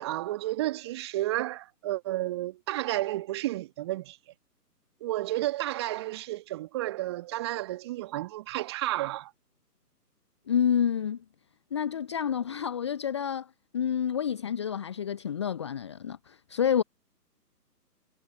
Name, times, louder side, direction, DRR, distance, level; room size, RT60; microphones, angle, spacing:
voice 1, 0.0-4.2 5.0-9.3, right 16 dB, 15° right, 1.7 m, -32 dB
voice 2, 10.5-11.2 11.7-16.8, left 8 dB, 15° left, 1.0 m, -29 dB
figure-of-eight pair, 140°, 49 cm